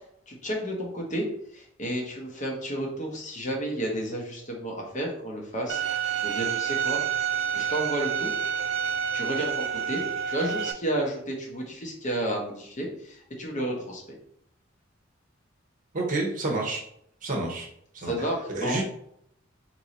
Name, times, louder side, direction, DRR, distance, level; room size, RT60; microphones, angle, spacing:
voice 1, 0.3-1.2 1.5-7.3 7.5-8.3 9.1-14.0 18.0-18.8, right 1 dB, 40° left, 0 dB, 0.8 m, -32 dB
Bowed string instrument, 5.7-10.7, right 8 dB, 60° right, 0.3 m, -28 dB
voice 2, 15.9-16.8 17.2-17.7 17.9-18.1 18.5-18.9, right 2 dB, 40° right, 0 dB, 0.8 m, -29 dB
3.0 x 2.6 x 4.0 m, 0.70 s
head